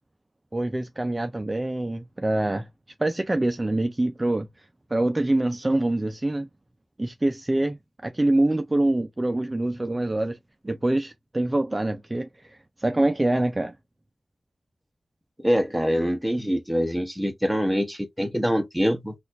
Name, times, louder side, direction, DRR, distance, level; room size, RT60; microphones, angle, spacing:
voice 1, 0.5-2.7 3.0-4.6 4.9-6.5 7.0-10.4 10.6-13.7, right 1 dB, 25° right, 0.4 m, -25 dB
voice 2, 15.4-19.1, equal, 5° right, 0.8 m, -24 dB
4.1 x 2.4 x 2.4 m
wide cardioid pair, 80°, 0 cm